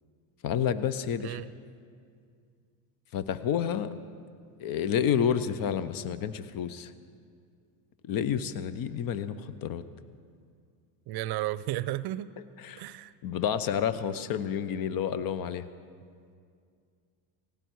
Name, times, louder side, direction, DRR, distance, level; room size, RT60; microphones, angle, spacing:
voice 1, 0.4-1.4 3.1-3.9 4.6-6.9 8.0-9.8 12.6-12.8 13.2-15.7, left 8 dB, 45° left, 14 dB, 0.9 m, -29 dB
voice 2, 11.1-12.3 12.8-13.1, right 15 dB, 55° right, 17 dB, 0.6 m, -33 dB
18.5 x 16.5 x 4.7 m, 2.2 s
supercardioid pair, 90°, 47 cm